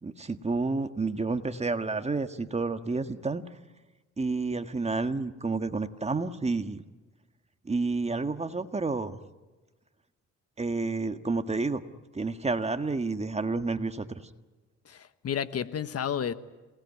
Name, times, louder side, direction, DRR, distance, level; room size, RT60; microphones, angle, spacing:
voice 1, 0.0-3.4 4.2-6.8 7.6-9.2 10.6-11.8 12.1-14.2, right 3 dB, 20° right, 8 dB, 1.7 m, -30 dB
voice 2, 14.9-16.3, left 8 dB, 55° left, 13 dB, 1.3 m, -31 dB
27.5 x 19.5 x 9.7 m, 1.2 s
cardioid pair, 90°, 30 cm